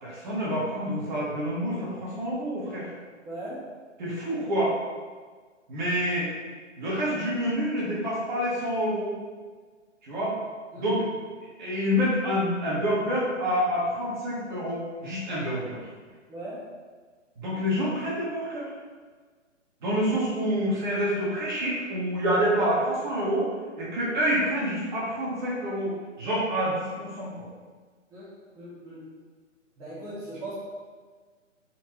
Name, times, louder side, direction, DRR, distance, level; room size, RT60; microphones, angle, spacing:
voice 1, 0.0-2.9 4.0-4.7 5.7-6.3 6.8-9.1 10.0-10.4 10.7-11.0 11.6-15.8 17.4-18.7 19.8-23.5 23.8-27.4, equal, 40° right, -7 dB, 1.5 m, -27 dB
voice 2, 3.2-3.6 10.7-11.0 16.3-16.6 28.1-28.3 28.5-29.0 29.8-30.5, right 1 dB, 10° right, -10 dB, 0.7 m, -39 dB
4.4 x 3.3 x 3.1 m, 1.5 s
figure-of-eight pair, 135°, 38 cm